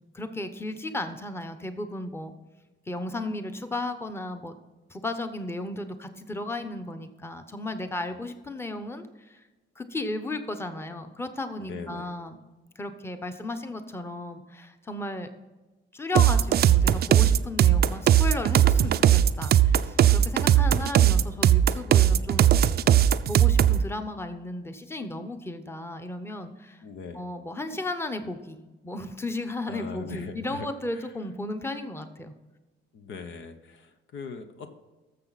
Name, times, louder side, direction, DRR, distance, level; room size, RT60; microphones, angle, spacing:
voice 1, 0.1-2.3 2.9-4.5 4.9-9.4 9.8-12.4 12.8-15.3 15.9-22.5 23.3-26.8 27.1-28.6 28.8-32.3, left 2 dB, 10° left, 8 dB, 1.0 m, -34 dB
voice 2, 11.6-12.1 26.8-27.2 29.7-30.7 30.9-31.1 32.9-34.7, left 5 dB, 75° left, 8 dB, 1.1 m, -40 dB
sound 1, 16.2-23.8, right 10 dB, 55° right, 0.4 m, -19 dB
13.5 x 6.9 x 4.1 m, 1.2 s
cardioid pair, 90°, 20 cm